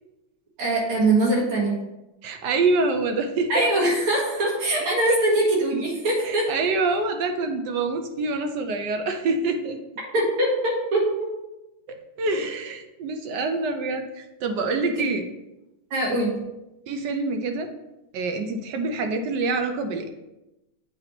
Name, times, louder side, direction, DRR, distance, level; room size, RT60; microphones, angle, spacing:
voice 1, 0.6-1.8 3.5-6.5 10.1-11.3 14.8-14.9 15.9-16.5, right 2 dB, 90° right, -5 dB, 3.0 m, -22 dB
voice 2, 2.2-3.5 5.1-5.2 6.2-9.8 12.2-15.3 16.9-17.7 18.1-20.1, right 3 dB, 70° right, 6 dB, 1.1 m, -26 dB
7.8 x 2.9 x 5.8 m, 0.97 s
omnidirectional pair, 2.3 m